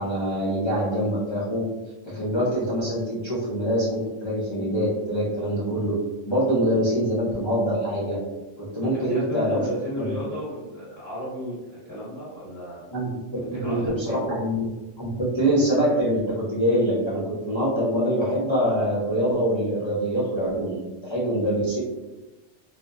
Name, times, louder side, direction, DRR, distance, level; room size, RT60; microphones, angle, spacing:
voice 1, 0.0-1.6 2.1-6.0 6.3-8.2 8.6-9.6 10.0-10.1 12.9-14.7 15.0-21.8, equal, 30° left, -9 dB, 0.5 m, -24 dB
voice 2, 8.8-12.9 13.3-14.3, equal, 15° right, -10 dB, 1.4 m, -34 dB
2.8 x 2.1 x 2.3 m, 1.1 s
omnidirectional pair, 1.3 m